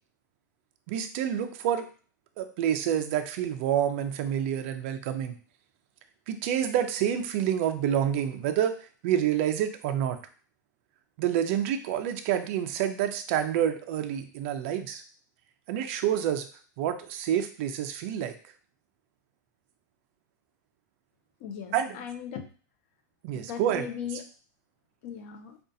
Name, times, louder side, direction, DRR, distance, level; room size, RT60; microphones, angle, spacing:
voice 1, 0.9-1.9 2.4-5.4 6.3-8.7 9.0-10.2 11.2-15.0 15.7-16.5 16.8-18.4 21.7-22.0 23.2-23.9, right 10 dB, 40° right, 7 dB, 0.4 m, -28 dB
voice 2, 21.4-22.5 23.3-24.2 25.0-25.6, left 8 dB, 40° left, 6 dB, 0.6 m, -38 dB
5.1 x 2.3 x 2.6 m, 0.40 s
supercardioid pair, 170°, 10 cm